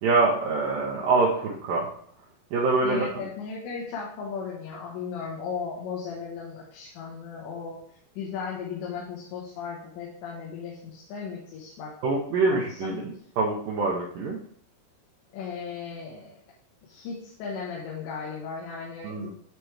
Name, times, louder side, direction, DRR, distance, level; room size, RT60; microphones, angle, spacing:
voice 1, 0.0-1.9 2.5-3.2 12.0-14.4 19.0-19.3, right 3 dB, 75° right, -2 dB, 2.1 m, -25 dB
voice 2, 2.8-7.8 8.2-11.9 12.5-13.0 15.3-16.3 16.8-19.3, left 5 dB, 85° left, -4 dB, 3.5 m, -36 dB
9.9 x 3.4 x 4.7 m, 0.64 s
omnidirectional pair, 5.1 m